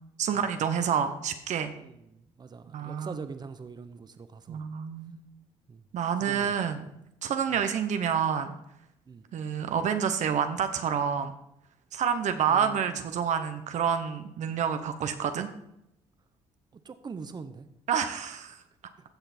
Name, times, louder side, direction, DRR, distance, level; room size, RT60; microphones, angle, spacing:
voice 1, 0.2-1.7 2.7-3.1 4.5-5.2 5.9-6.9 7.2-8.5 9.3-11.3 11.9-15.5 17.9-18.6, right 7 dB, 60° right, 8 dB, 0.9 m, -28 dB
voice 2, 1.8-4.6 5.7-5.8 6.2-6.6 7.5-7.6 9.1-9.2 12.5-13.0 16.8-17.7, right 5 dB, 30° right, 11 dB, 0.8 m, -43 dB
15.0 x 5.9 x 4.3 m, 0.81 s
supercardioid pair, 80°, 13 cm